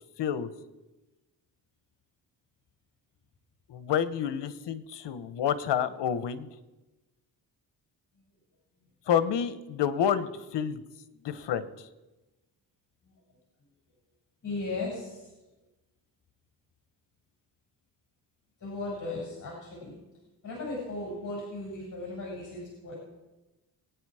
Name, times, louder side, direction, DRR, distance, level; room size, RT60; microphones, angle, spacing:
voice 1, 0.2-0.5 3.7-6.5 9.1-10.8 11.2-11.7, left 8 dB, 80° left, 14 dB, 1.1 m, -29 dB
voice 2, 14.4-15.3 18.6-20.0 20.4-23.0, left 2 dB, 45° left, -3 dB, 6.8 m, -36 dB
24.0 x 9.6 x 4.9 m, 1.1 s
cardioid pair, 90°, 41 cm